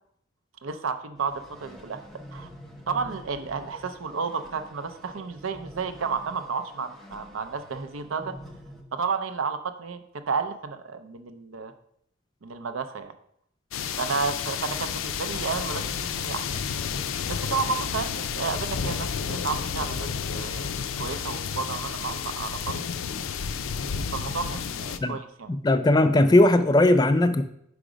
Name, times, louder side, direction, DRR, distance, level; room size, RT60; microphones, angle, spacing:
voice 1, 0.6-2.0 2.3-2.5 2.9-8.3 8.9-11.7 12.4-13.1 14.0-16.6 17.3-20.7 21.0-22.8 24.1-25.5, right 5 dB, 90° right, 9 dB, 0.6 m, -32 dB
sound 1, 1.2-8.8, equal, ahead, 0.8 m, -46 dB
sound 2, 13.7-25.0, left 7 dB, 90° left, 0.4 m, -31 dB
voice 2, 25.6-27.4, left 1 dB, 20° left, 10 dB, 0.3 m, -18 dB
5.1 x 4.7 x 5.0 m, 0.72 s
head